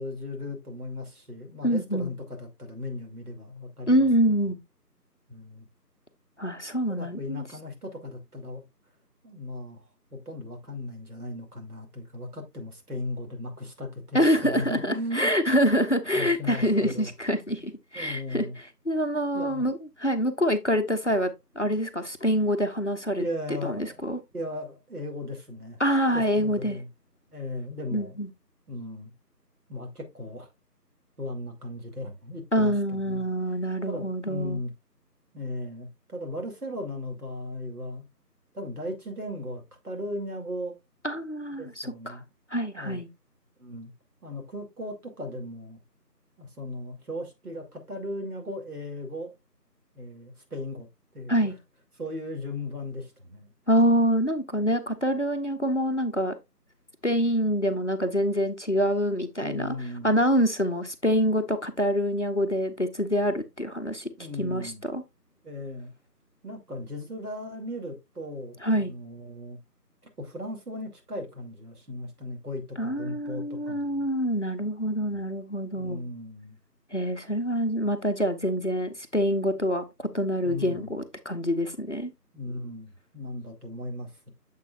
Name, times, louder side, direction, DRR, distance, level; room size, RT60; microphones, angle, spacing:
voice 1, 0.0-4.1 5.3-5.7 6.9-8.6 9.2-9.8 10.1-15.3 16.1-17.1 17.9-18.5 19.3-19.7 23.2-24.0 24.3-25.8 26.1-26.9 27.3-28.1 28.7-29.1 29.7-30.5 31.2-33.2 33.9-34.7 35.3-38.0 38.5-40.7 41.6-42.2 42.7-43.0 43.6-43.9 44.2-45.8 46.4-49.3 49.9-50.9 51.1-51.5 52.0-53.5 59.4-60.2 64.1-64.8 65.4-65.9 66.4-69.6 70.2-74.1 75.1-75.2 75.7-76.6 80.4-81.0 82.3-84.3, left 1 dB, 65° right, 2.7 m, -37 dB
voice 2, 1.6-2.1 3.9-4.6 6.4-7.4 14.1-18.5 18.9-21.3 21.6-23.2 23.6-24.2 25.8-26.8 27.9-28.3 32.5-34.6 41.0-42.2 42.5-43.1 51.3-51.6 53.7-56.3 57.0-59.7 60.0-64.1 64.4-65.0 68.6-68.9 72.8-76.0 76.9-82.1, equal, 45° left, 0.7 m, -26 dB
7.3 x 6.6 x 2.4 m
figure-of-eight pair, 175°, 49 cm